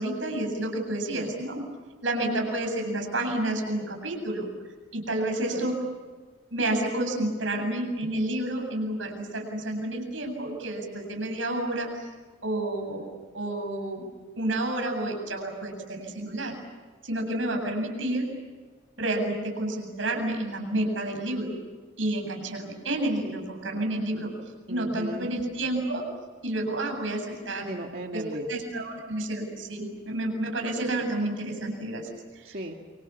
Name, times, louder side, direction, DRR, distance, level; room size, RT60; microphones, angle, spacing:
voice 1, 0.0-1.6 2.0-4.5 4.9-5.8 6.5-12.1 12.4-13.1 13.3-14.1 14.4-16.5 17.0-18.3 19.0-21.5 22.0-24.3 24.7-26.0 26.4-27.7 28.1-32.6, right 1 dB, 85° right, 3 dB, 8.0 m, -30 dB
voice 2, 24.7-25.4 27.6-28.5 32.4-32.7, right 1 dB, 50° right, 3 dB, 2.2 m, -36 dB
28.5 x 27.0 x 7.2 m, 1.4 s
head